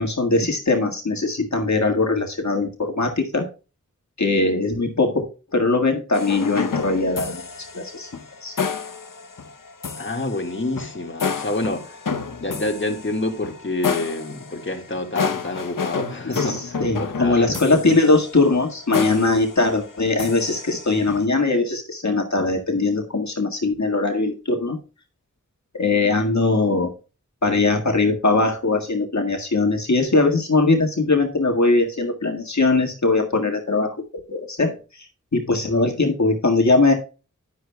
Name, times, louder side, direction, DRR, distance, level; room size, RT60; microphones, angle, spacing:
voice 1, 0.0-3.5 4.2-5.2 5.5-7.4 7.7-8.1 8.4-8.6 16.3-24.8 25.7-26.9 27.4-34.0 34.3-34.7 35.3-36.9, left 3 dB, 60° left, 1.9 m, -20 dB
sound 1, 6.1-21.2, left 5 dB, 85° left, 0.9 m, -30 dB
voice 2, 10.0-12.0 12.4-17.5, left 2 dB, 40° left, 1.9 m, -28 dB
10.5 x 10.5 x 2.3 m
wide cardioid pair, 50°, 31 cm